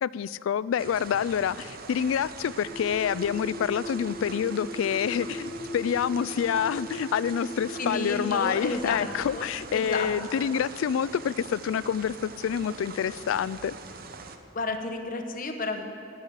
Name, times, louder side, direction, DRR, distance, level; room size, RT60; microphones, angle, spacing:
voice 1, 0.0-13.7, left 8 dB, 90° left, 19 dB, 0.3 m, -27 dB
sound 1, 0.8-14.4, right 4 dB, 50° right, 0.7 m, -43 dB
sound 2, 2.6-8.6, equal, 85° right, 2.7 m, -39 dB
voice 2, 7.8-9.5 9.7-10.5 14.5-15.8, left 2 dB, 45° left, 6 dB, 1.0 m, -32 dB
12.0 x 6.2 x 9.0 m, 2.9 s
head